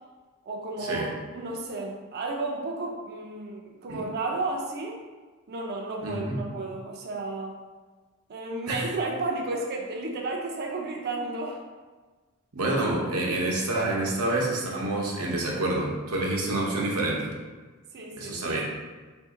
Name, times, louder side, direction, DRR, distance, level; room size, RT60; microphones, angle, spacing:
voice 1, 0.4-1.1 1.3-5.0 5.5-7.5 8.3-11.6 17.1-17.2 17.9-18.6, right 2 dB, 45° right, -1 dB, 0.5 m, -33 dB
voice 2, 6.0-6.4 8.7-8.8 12.5-17.3 18.2-18.6, right 2 dB, 70° right, -2 dB, 0.8 m, -27 dB
3.5 x 2.6 x 3.7 m, 1.3 s
head